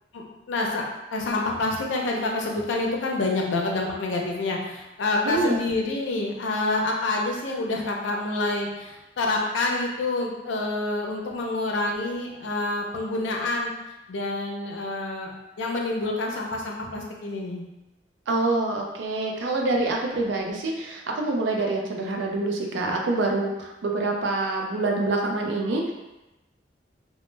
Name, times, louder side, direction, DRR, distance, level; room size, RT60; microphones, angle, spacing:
voice 1, 0.1-0.8 1.1-13.7 14.1-17.6, left 2 dB, 80° left, 0 dB, 0.5 m, -27 dB
voice 2, 5.2-5.6 18.3-25.9, right 2 dB, 80° right, 1 dB, 0.4 m, -26 dB
2.1 x 2.0 x 3.1 m, 1.0 s
head